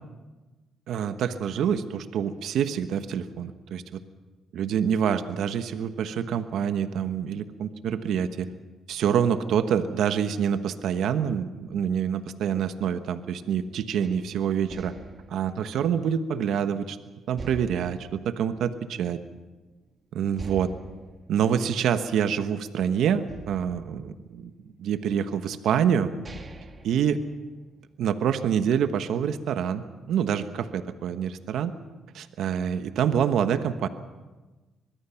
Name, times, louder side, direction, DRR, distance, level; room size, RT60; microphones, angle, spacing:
voice 1, 0.9-4.0 4.5-8.5 8.9-14.9 15.3-17.0 17.3-19.2 20.1-20.7 21.3-24.5 24.8-26.1 26.8-27.2 28.0-31.7 32.1-33.9, right 8 dB, 75° right, 9 dB, 1.2 m, -26 dB
sound 1, 14.0-16.8 17.4-19.3 19.7-19.8 20.3-22.7 23.3-24.9 25.6-25.7 26.1-27.9, right 2 dB, 35° right, 2.4 m, -45 dB
24.5 x 21.0 x 5.8 m, 1.2 s
cardioid pair, 90°, 0 cm